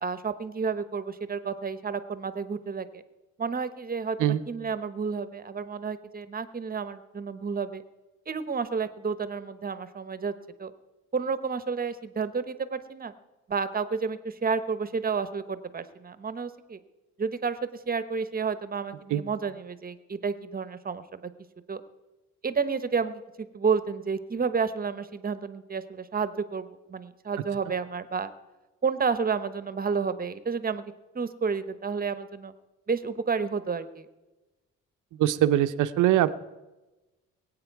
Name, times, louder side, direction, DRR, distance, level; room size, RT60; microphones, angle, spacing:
voice 1, 0.0-3.0 3.4-7.8 8.3-10.3 10.6-10.7 11.1-13.1 13.5-16.8 17.2-17.6 17.9-21.3 21.7-21.8 22.4-28.3 28.8-30.8 31.1-32.5 32.9-34.1, right 5 dB, 30° right, 12 dB, 1.0 m, -30 dB
voice 2, 35.2-36.3, right 12 dB, 85° right, 12 dB, 0.7 m, -22 dB
21.5 x 8.6 x 4.7 m, 1.1 s
cardioid pair, 90°, 30 cm